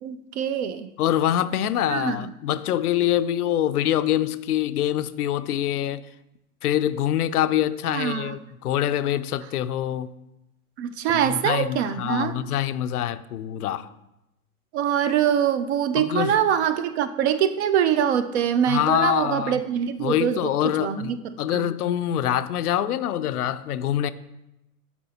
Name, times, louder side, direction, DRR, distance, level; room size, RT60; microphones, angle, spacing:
voice 1, 0.0-0.9 1.9-2.3 7.9-8.4 10.8-12.4 14.7-20.5 20.8-21.2 21.5-21.6, right 9 dB, 50° right, 0.5 m, -24 dB
voice 2, 1.0-6.1 6.6-10.1 11.2-13.9 16.0-16.4 18.7-19.6 20.0-21.1 21.4-24.1, left 11 dB, 80° left, 0.5 m, -25 dB
11.5 x 4.3 x 2.8 m
hypercardioid pair, 115°, 45 cm